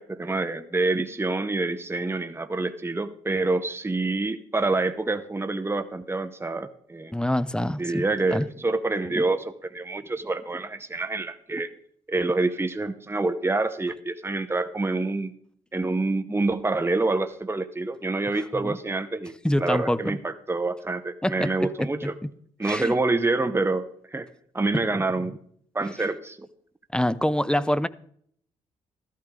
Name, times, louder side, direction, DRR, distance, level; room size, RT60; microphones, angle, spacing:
voice 1, 0.0-7.1 7.8-11.7 12.1-15.3 15.7-19.3 19.6-22.1 22.6-24.3 24.5-25.4 25.7-26.5, right 2 dB, 15° right, 0.9 m, -27 dB
voice 2, 7.1-8.0 8.3-8.5 18.5-18.8 19.4-20.2 21.2-21.9 22.6-22.9 24.7-24.8 26.9-27.9, left 1 dB, 5° left, 0.6 m, -25 dB
13.5 x 12.0 x 3.8 m
supercardioid pair, 50°, 14 cm